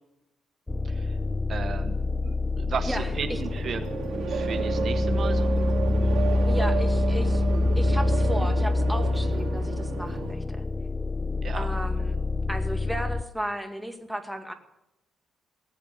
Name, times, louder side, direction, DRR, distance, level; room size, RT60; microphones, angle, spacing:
sound 1, 0.7-13.2, left 2 dB, 20° left, 0.6 m, -26 dB
voice 1, 0.8-1.2 1.5-2.0 2.2-3.9 4.1-5.6 11.4-11.7, right 6 dB, 55° right, 8 dB, 1.0 m, -35 dB
voice 2, 2.9-3.4 6.5-7.4 7.8-10.6 11.6-12.2 12.5-14.5, right 1 dB, 5° right, 5 dB, 2.1 m, -34 dB
sound 2, 2.9-10.3, right 5 dB, 75° right, 2.5 m, -31 dB
18.0 x 7.7 x 8.2 m, 0.90 s
cardioid pair, 90°, 0 cm